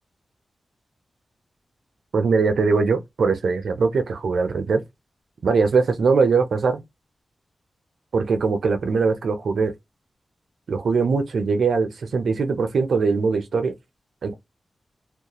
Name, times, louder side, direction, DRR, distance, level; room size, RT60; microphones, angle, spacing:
voice 1, 2.1-4.8 5.4-6.8 8.1-9.7 10.7-13.7 14.2-14.3, right 4 dB, 85° right, 0.6 m, -21 dB
2.3 x 2.1 x 2.9 m
cardioid pair, 55°, 0 cm